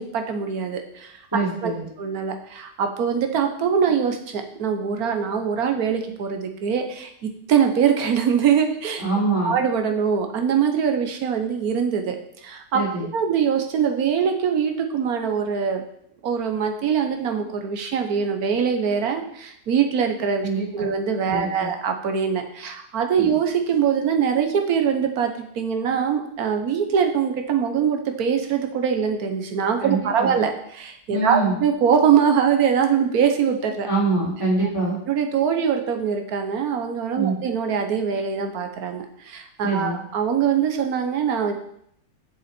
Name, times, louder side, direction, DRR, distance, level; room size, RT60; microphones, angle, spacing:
voice 1, 0.0-1.1 1.6-1.7 2.0-9.0 9.4-12.2 12.4-12.8 13.1-15.8 16.2-33.9 35.1-41.5, right 7 dB, 65° right, 5 dB, 1.4 m, -23 dB
voice 2, 1.3-1.8 9.0-9.6 12.7-13.1 20.4-20.9 21.3-21.7 23.2-23.3 29.8-30.4 31.1-31.5 33.9-35.0 37.1-37.3 39.6-40.0, right 3 dB, 15° right, -5 dB, 3.3 m, -24 dB
8.0 x 7.0 x 4.4 m, 0.71 s
omnidirectional pair, 1.8 m